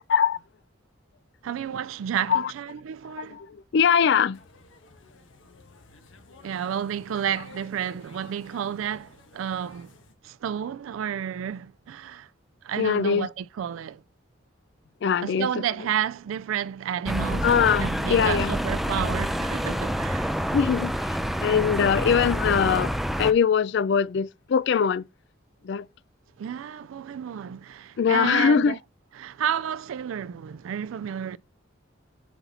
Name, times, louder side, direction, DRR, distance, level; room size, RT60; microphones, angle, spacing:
voice 1, 1.4-3.4 6.4-9.9 10.2-12.3 12.6-14.0 15.2-17.5 17.8-20.3 26.4-28.8 29.2-31.4, right 9 dB, 85° right, 0.3 m, -31 dB
voice 2, 3.7-4.4 12.8-13.3 15.0-15.5 17.4-18.6 20.5-22.9 23.2-25.0 25.6-25.9 28.0-28.7, left 7 dB, 60° left, 0.4 m, -22 dB
sound 1, 4.3-10.1, left 3 dB, 75° left, 1.4 m, -52 dB
sound 2, 17.1-23.3, equal, ahead, 0.5 m, -27 dB
7.0 x 5.8 x 4.2 m
head